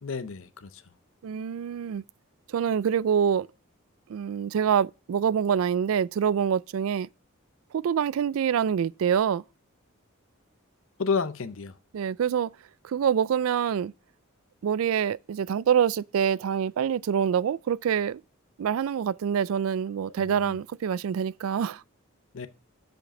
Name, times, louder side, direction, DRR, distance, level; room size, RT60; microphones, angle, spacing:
voice 1, 0.0-0.8 11.0-11.7 20.2-20.6 22.3-22.5, left 5 dB, 70° left, 0.7 m, -31 dB
voice 2, 1.2-2.0 2.5-3.5 4.1-7.1 7.7-9.4 11.9-12.5 12.8-13.9 14.6-18.2 18.6-21.8, right 8 dB, 75° right, 0.3 m, -26 dB
7.5 x 5.1 x 5.2 m
head